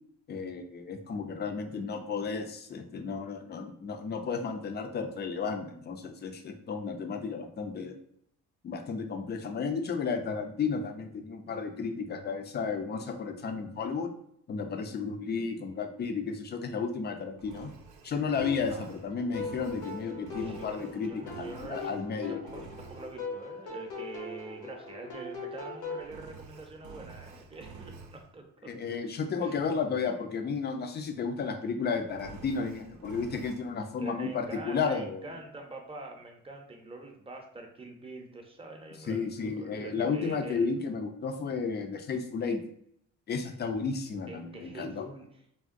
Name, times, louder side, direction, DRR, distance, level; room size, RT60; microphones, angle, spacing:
voice 1, 0.3-7.9 8.6-14.1 14.5-17.7 18.0-22.4 28.7-35.2 39.1-42.6 43.3-45.1, left 5 dB, 35° left, 6 dB, 0.4 m, -33 dB
Engine, 17.4-22.1 22.4-23.2 26.0-28.3 32.1-33.6, right 5 dB, 80° right, 0.5 m, -49 dB
sound 1, 18.4-26.1, left 4 dB, 80° left, 1.0 m, -41 dB
voice 2, 20.4-28.7 29.4-29.6 34.0-40.7 44.3-45.4, right 2 dB, 20° right, 2 dB, 0.6 m, -45 dB
3.5 x 2.2 x 2.5 m, 0.72 s
cardioid pair, 90°, 30 cm